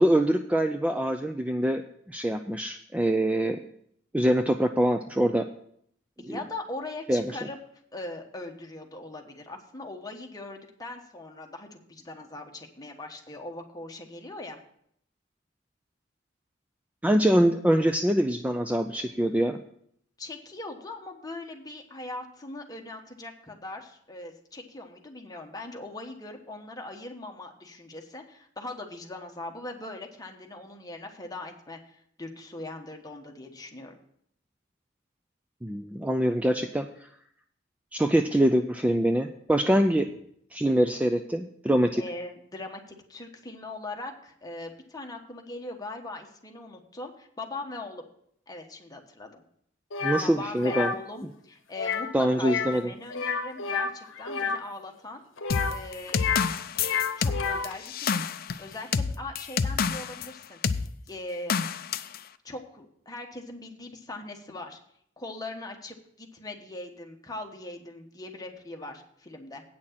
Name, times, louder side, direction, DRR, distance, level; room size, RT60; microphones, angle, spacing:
voice 1, 0.0-1.8 2.1-3.6 4.1-5.5 6.2-6.4 7.1-7.2 17.0-19.6 35.6-36.9 37.9-40.1 40.5-42.0 50.0-50.9 52.1-52.9, right 1 dB, 10° right, 6 dB, 0.4 m, -24 dB
voice 2, 6.2-7.6 7.9-14.6 20.2-34.0 42.0-48.0 48.5-49.4 50.2-55.2 55.7-56.3 57.2-58.2 58.6-60.8 61.1-61.6 62.4-64.8 65.2-69.6, left 2 dB, 20° left, 3 dB, 1.2 m, -40 dB
sound 1, 49.9-50.2 50.6-51.0 51.7-52.1 52.4-52.8 53.1-54.6 55.4-56.5 56.8-57.7, left 5 dB, 90° left, 0.9 m, -30 dB
sound 2, 55.5-60.3 60.6-60.9 61.5-62.2, left 6 dB, 50° left, 0.5 m, -28 dB
8.7 x 6.4 x 7.2 m, 0.68 s
head